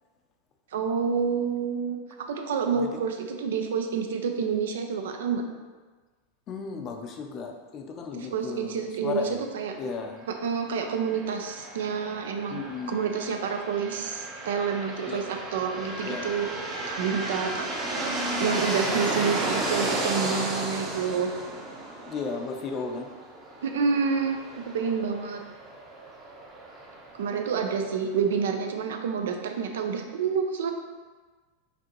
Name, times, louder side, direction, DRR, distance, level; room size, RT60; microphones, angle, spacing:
voice 1, 0.7-5.4 8.1-9.3 9.5-9.7 10.4-16.5 16.9-17.7 18.4-21.3 23.6-25.4 27.2-30.7, right 6 dB, 85° right, 5 dB, 0.5 m, -28 dB
voice 2, 6.5-9.5 9.8-10.3 12.5-13.0 15.1-15.2 16.1-16.3 16.8-17.1 19.1-19.6 22.0-23.1, left 5 dB, 35° left, 4 dB, 0.5 m, -35 dB
sound 1, 10.9-28.5, right 2 dB, 25° right, 0.7 m, -34 dB
5.0 x 2.7 x 3.0 m, 1.4 s
supercardioid pair, 140°, 0 cm